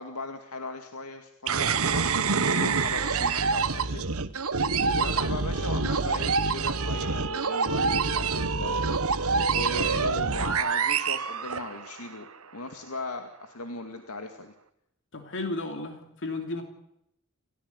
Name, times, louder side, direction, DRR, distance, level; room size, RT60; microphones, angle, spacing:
voice 1, 0.0-4.0 4.9-14.5, left 3 dB, 75° left, 6 dB, 2.2 m, -38 dB
sound 1, 1.5-12.1, right 5 dB, 70° right, 1.4 m, -26 dB
voice 2, 15.1-16.6, left 2 dB, 60° left, 5 dB, 2.9 m, -33 dB
30.0 x 15.0 x 9.7 m, 0.79 s
head